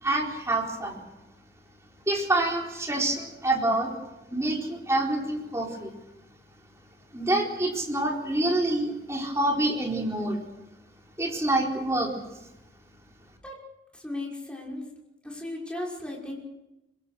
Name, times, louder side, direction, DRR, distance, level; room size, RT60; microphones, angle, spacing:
voice 1, 0.0-1.0 2.1-3.9 4.3-5.9 7.1-10.4 11.2-12.1, right 1 dB, 15° right, 0 dB, 4.4 m, -26 dB
voice 2, 14.0-14.8 15.2-16.4, left 1 dB, 5° left, -3 dB, 5.7 m, -35 dB
25.5 x 23.0 x 6.5 m, 0.96 s
head